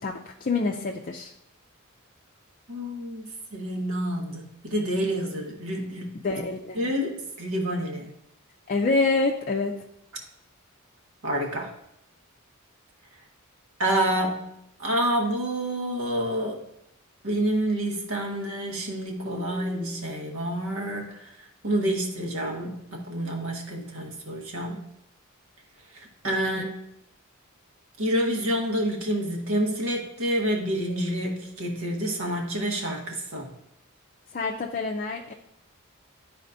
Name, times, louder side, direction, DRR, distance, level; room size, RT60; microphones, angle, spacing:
voice 1, 0.0-1.3 6.2-6.9 8.7-9.7 26.5-26.6 34.3-35.3, left 3 dB, 40° left, 1 dB, 0.5 m, -27 dB
voice 2, 2.7-6.4 6.8-8.1 11.2-11.7 13.8-16.6 17.2-21.3 21.6-24.8 25.9-26.7 28.0-33.5, right 1 dB, 75° right, 1 dB, 1.4 m, -28 dB
12.0 x 4.2 x 2.7 m, 0.78 s
head